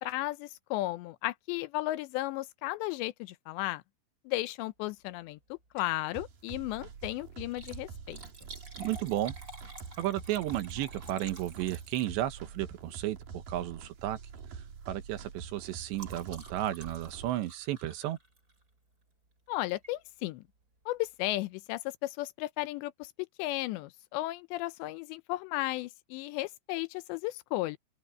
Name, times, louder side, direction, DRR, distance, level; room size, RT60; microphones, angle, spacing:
voice 1, 0.0-3.8 4.3-8.2 19.5-20.4 20.9-23.1 23.4-27.8, left 18 dB, 85° left, 3.0 m, -34 dB
Liquid, 5.6-6.0 6.4-6.5 7.4-12.5 13.5-13.8 14.1-14.4 14.7-18.7 19.7-19.9 20.5-20.6 20.8-20.9, right 2 dB, 20° right, 5.0 m, -50 dB
sound 1, 6.1-17.3, right 6 dB, 55° right, 3.8 m, -46 dB
voice 2, 8.8-9.3 10.0-14.2 14.9-18.2, right 13 dB, 80° right, 3.4 m, -33 dB
open air
omnidirectional pair, 5.0 m